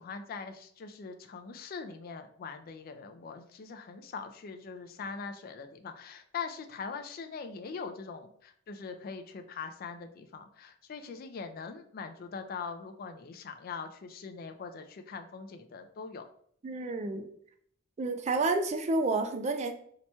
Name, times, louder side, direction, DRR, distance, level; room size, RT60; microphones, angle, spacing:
voice 1, 0.0-16.2, left 5 dB, 50° left, 7 dB, 0.3 m, -42 dB
voice 2, 16.6-17.3 18.0-19.7, right 3 dB, 35° right, 7 dB, 0.3 m, -30 dB
2.8 x 2.2 x 4.1 m, 0.64 s
head